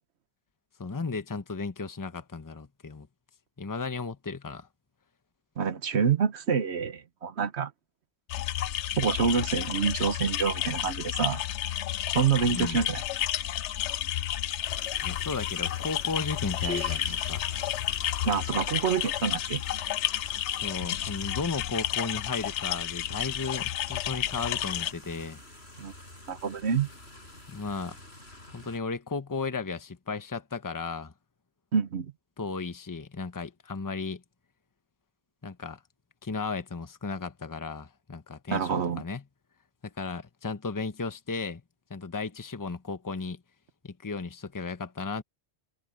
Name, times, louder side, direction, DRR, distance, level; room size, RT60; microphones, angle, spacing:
voice 1, 0.8-3.1 3.6-4.7 12.5-12.8 15.0-17.5 20.6-25.4 27.5-28.0 28.5-31.1 32.4-34.2 35.4-35.8 36.2-39.2 40.0-41.6 41.9-43.4 43.8-45.2, left 4 dB, 20° left, 0.9 m, -35 dB
voice 2, 5.6-7.7 9.0-11.4 12.1-13.0 18.2-19.6 25.8-25.9 26.3-26.9 31.7-32.1 38.5-39.0, right 6 dB, 70° right, 1.3 m, -27 dB
sound 1, 8.3-24.9, left 12 dB, 90° left, 0.9 m, -31 dB
sound 2, 14.6-28.8, left 1 dB, 65° left, 7.5 m, -50 dB
sound 3, 16.6-17.5, equal, 55° right, 1.8 m, -36 dB
omnidirectional pair, 1.1 m